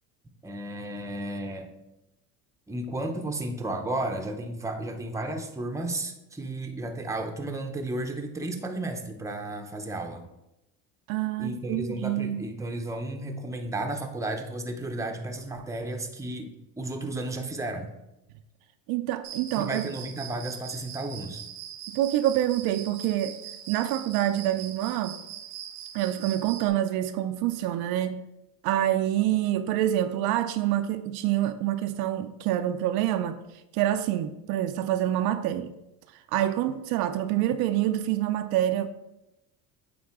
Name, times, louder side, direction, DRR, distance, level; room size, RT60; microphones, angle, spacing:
voice 1, 0.4-1.7 2.7-10.3 11.4-16.5 16.8-17.9 19.6-21.4, right 2 dB, 10° right, 0.7 m, -33 dB
voice 2, 11.1-12.4 18.9-19.8 21.9-23.4 23.7-25.2 25.9-28.3 28.6-33.4 33.7-35.7 36.3-38.9, right 12 dB, 65° right, 0.5 m, -26 dB
Cricket, 19.2-26.7, right 10 dB, 85° right, 0.9 m, -42 dB
8.6 x 3.6 x 3.6 m
supercardioid pair, 105°, 40 cm